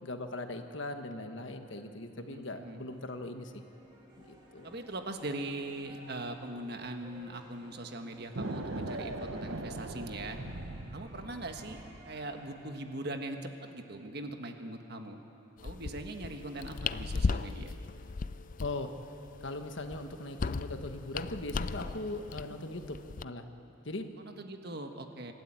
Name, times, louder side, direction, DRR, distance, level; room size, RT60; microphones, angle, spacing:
voice 1, 0.0-3.6 4.2-4.8 18.6-18.9 19.4-23.4 23.8-24.1, left 2 dB, 65° left, 6 dB, 1.4 m, -40 dB
sound 1, 1.3-12.8, right 1 dB, 25° right, 2.6 m, -57 dB
voice 2, 2.2-2.9 4.6-10.4 10.9-15.2 15.6-17.7 24.2-25.3, right 2 dB, 50° right, 5 dB, 1.5 m, -41 dB
sound 2, 8.4-12.1, right 2 dB, 85° right, 1.2 m, -40 dB
sound 3, 15.6-23.2, left 4 dB, 40° left, 0.4 m, -37 dB
26.5 x 13.0 x 8.9 m, 2.9 s
head